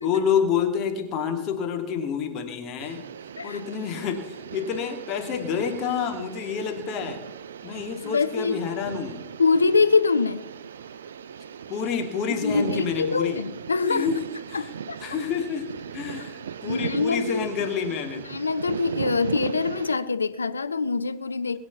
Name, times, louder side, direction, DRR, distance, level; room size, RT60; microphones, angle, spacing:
voice 1, 0.0-3.0 3.4-7.2 7.6-9.2 11.7-13.4 13.9-14.2 14.5-14.7 15.0-15.7 15.9-18.3, left 7 dB, 35° left, 2.6 m, -28 dB
sound 1, 2.8-20.0, right 7 dB, 65° right, 0.6 m, -38 dB
voice 2, 8.0-8.6 9.4-10.4 12.3-14.2 14.5-15.0 16.6-17.5 18.1-21.6, left 4 dB, 75° left, 0.8 m, -24 dB
21.5 x 8.8 x 7.0 m
figure-of-eight pair, 90°, 0 cm